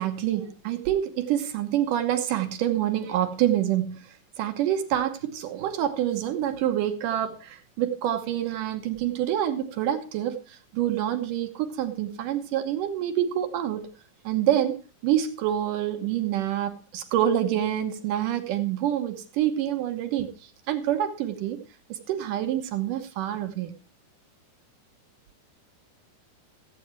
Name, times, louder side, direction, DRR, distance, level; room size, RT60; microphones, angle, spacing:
voice 1, 0.0-4.0 4.4-13.9 14.2-20.3 20.7-21.6 21.9-23.8, right 11 dB, 70° right, 2.3 m, -27 dB
15.0 x 8.5 x 4.5 m
omnidirectional pair, 4.4 m